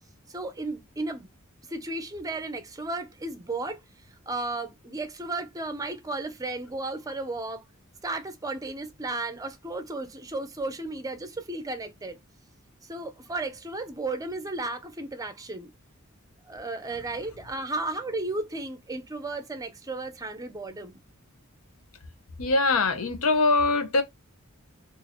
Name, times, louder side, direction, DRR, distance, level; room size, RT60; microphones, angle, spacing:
voice 1, 0.3-1.3 1.7-3.8 4.3-7.6 8.0-12.2 12.9-15.7 16.4-21.0, right 2 dB, 15° right, 0.5 m, -34 dB
voice 2, 22.4-24.0, left 3 dB, 85° left, 0.7 m, -22 dB
2.7 x 2.5 x 4.1 m
head